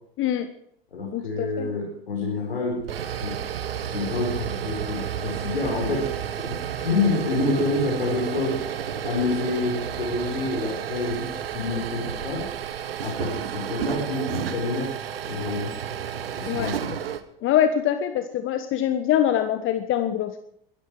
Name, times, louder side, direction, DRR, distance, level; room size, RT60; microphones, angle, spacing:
voice 1, 0.2-0.5 1.1-1.7 16.5-16.7 17.4-20.4, left 10 dB, 45° left, 9 dB, 1.4 m, -24 dB
voice 2, 0.9-2.8 3.2-3.3 3.8-8.6 9.0-12.5 13.0-14.9 15.3-15.8 16.4-17.0, left 3 dB, 85° left, -3 dB, 4.7 m, -28 dB
sound 1, 2.7-17.2, right 9 dB, 80° right, 1.4 m, -31 dB
22.0 x 13.5 x 4.8 m, 0.70 s
figure-of-eight pair, 75°, 29 cm